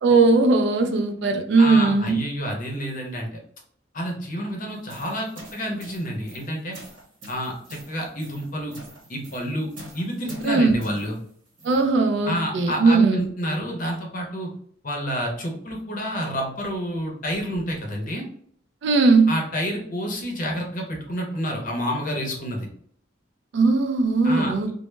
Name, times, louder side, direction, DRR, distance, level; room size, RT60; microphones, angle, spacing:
voice 1, 0.0-2.2 10.4-10.9 11.6-13.3 18.8-19.3 23.5-24.7, right 3 dB, 60° right, 6 dB, 0.3 m, -19 dB
voice 2, 1.6-3.4 3.9-6.8 7.3-8.7 9.1-9.7 9.9-11.2 12.2-14.5 14.8-18.3 19.3-22.7 24.2-24.5, equal, 40° left, 1 dB, 0.6 m, -29 dB
sound 1, 4.7-11.9, right 1 dB, 85° right, 1.1 m, -45 dB
2.1 x 2.0 x 3.1 m, 0.62 s
head